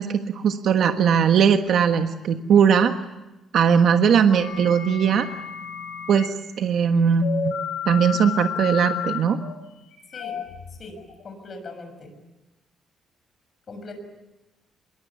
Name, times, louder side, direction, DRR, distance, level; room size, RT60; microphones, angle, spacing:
voice 1, 0.0-2.9 3.5-5.3 6.1-7.5 7.9-9.4, right 7 dB, 60° right, 6 dB, 1.4 m, -19 dB
sound 1, 4.4-6.3 7.2-11.2, left 8 dB, 90° left, 7.5 m, -32 dB
voice 2, 10.8-12.1 13.7-13.9, left 3 dB, 35° left, 5 dB, 6.8 m, -40 dB
25.5 x 23.0 x 8.3 m, 1.0 s
cardioid pair, 165°, 0 cm